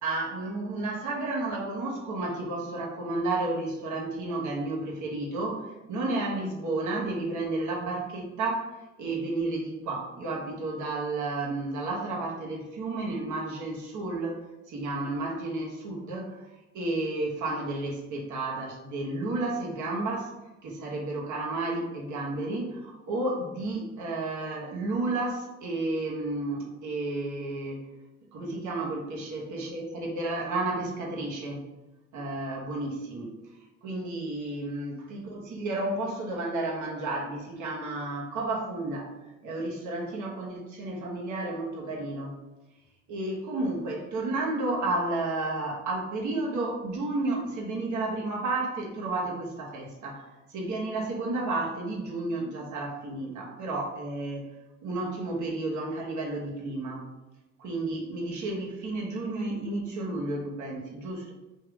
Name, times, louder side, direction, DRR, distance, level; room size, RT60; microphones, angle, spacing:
voice 1, 0.0-20.3 20.6-27.9 28.3-31.6 32.1-33.3 33.8-39.1 39.4-42.4 43.1-54.5 54.8-57.1 57.6-61.3, right 2 dB, 75° right, -2 dB, 1.3 m, -32 dB
3.7 x 2.7 x 4.7 m, 1.1 s
cardioid pair, 90°, 30 cm